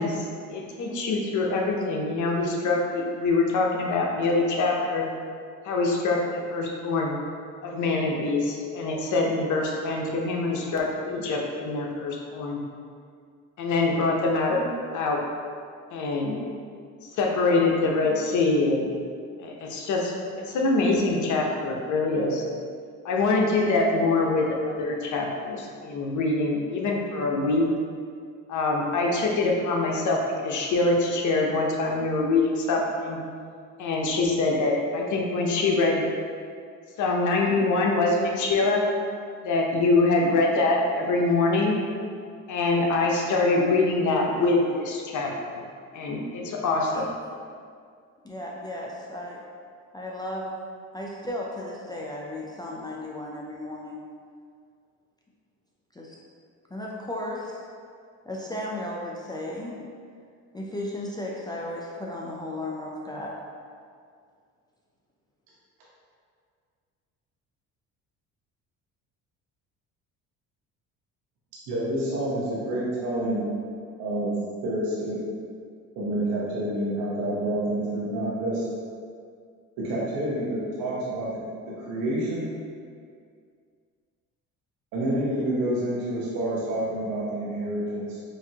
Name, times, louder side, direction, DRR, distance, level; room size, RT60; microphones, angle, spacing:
voice 1, 0.0-5.1 5.6-7.1 7.6-12.6 13.6-14.7 14.9-15.2 15.9-16.4 17.2-18.9 19.4-22.4 23.0-27.7 28.5-33.2 33.8-36.0 37.0-38.8 39.4-41.8 42.5-45.6 45.9-47.1, left 3 dB, 60° left, 0 dB, 0.8 m, -24 dB
voice 2, 48.2-49.4 49.9-50.5 50.9-54.0 55.9-56.2 56.7-57.6 58.3-59.9 60.5-63.3, left 1 dB, 10° left, -4 dB, 0.4 m, -35 dB
voice 3, 71.7-73.5 74.0-74.4 74.6-75.2 75.9-78.6 79.8-81.4 81.8-82.5 84.9-88.2, right 1 dB, 80° right, -7 dB, 1.0 m, -28 dB
4.9 x 2.6 x 2.8 m, 2.2 s
cardioid pair, 90°, 35 cm